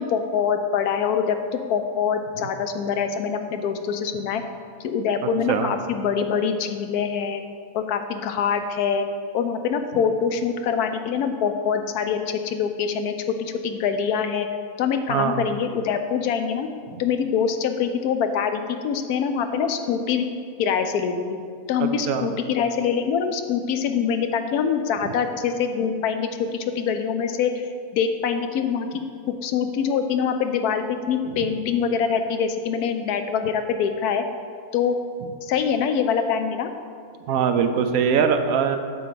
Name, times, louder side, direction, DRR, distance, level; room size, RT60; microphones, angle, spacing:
voice 1, 0.0-4.4 4.8-7.4 7.7-9.0 9.3-14.5 14.8-16.7 17.0-20.3 20.6-21.2 21.7-27.7 27.9-28.9 29.3-34.2 34.7-35.0 35.4-36.7, left 7 dB, 90° left, 8 dB, 1.2 m, -24 dB
voice 2, 15.1-15.5 16.9-17.0 21.8-22.3 31.2-31.4 37.2-38.8, right 7 dB, 75° right, 7 dB, 1.0 m, -22 dB
8.6 x 3.9 x 6.8 m, 2.2 s
omnidirectional pair, 1.6 m